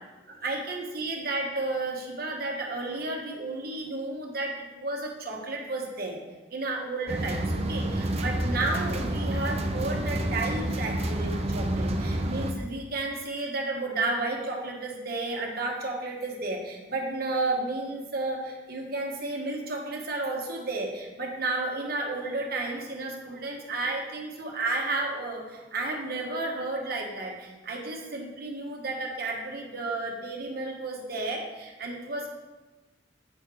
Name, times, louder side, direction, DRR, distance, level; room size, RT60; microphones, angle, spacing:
voice 1, 0.3-6.2 6.5-32.3, right 2 dB, 55° right, 0 dB, 1.4 m, -32 dB
sound 1, 7.1-12.5, right 1 dB, 35° right, 0.6 m, -29 dB
8.0 x 4.3 x 4.8 m, 1.2 s
head